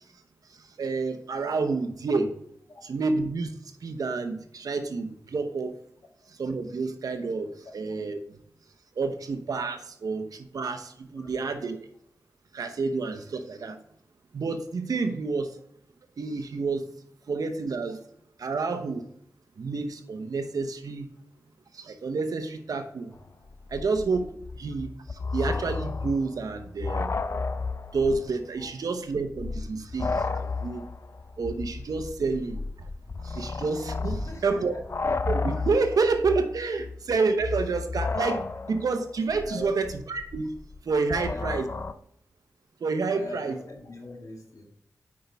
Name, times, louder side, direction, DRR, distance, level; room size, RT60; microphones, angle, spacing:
voice 1, 0.8-2.4 2.9-3.5 3.8-5.7 6.4-8.2 9.0-11.8 12.5-13.8 14.3-15.5 16.2-16.8 17.3-18.0 18.4-19.1 19.6-21.1 21.7-23.1 23.7-27.1 27.9-30.8 31.4-32.9 33.2-34.2 34.4-34.7 35.3-40.5 40.8-41.7 42.8-43.6, right 4 dB, 85° right, 8 dB, 0.8 m, -29 dB
voice 2, 11.1-11.8 28.6-28.7 34.0-34.8 39.4-39.7 41.1-41.7 43.1-44.6, left 2 dB, 65° left, 0 dB, 2.1 m, -41 dB
sound 1, 23.2-23.3 23.5-28.3 28.6-28.7 29.3-41.9, left 4 dB, 45° left, 0.5 m, -33 dB
8.6 x 5.3 x 3.5 m, 0.70 s
cardioid pair, 45°, 6 cm